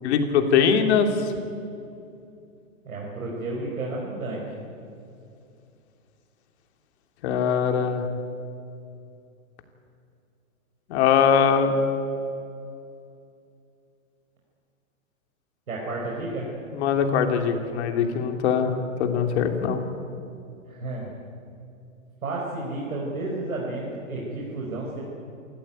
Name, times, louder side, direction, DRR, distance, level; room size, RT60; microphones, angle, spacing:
voice 1, 0.0-1.3 7.2-8.1 10.9-11.8 16.7-19.8, left 7 dB, 50° left, 6 dB, 3.0 m, -22 dB
voice 2, 2.9-4.4 15.7-16.5 20.7-21.1 22.2-25.0, right 2 dB, 90° right, -3 dB, 5.4 m, -31 dB
27.5 x 14.5 x 9.1 m, 2.6 s
hypercardioid pair, 135°, 41 cm